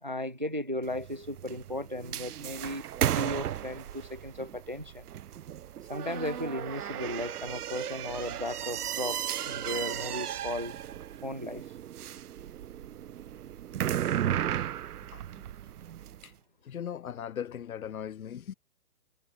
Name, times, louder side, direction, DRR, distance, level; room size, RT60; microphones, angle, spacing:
voice 1, 0.0-5.1 5.9-10.8 11.2-11.7, left 1 dB, 35° right, 0.4 m, -36 dB
Old Creaky Door, 0.8-16.2, right 11 dB, 75° right, 0.7 m, -35 dB
voice 2, 16.6-18.5, left 9 dB, 65° left, 1.0 m, -38 dB
hypercardioid pair, 180°, 46 cm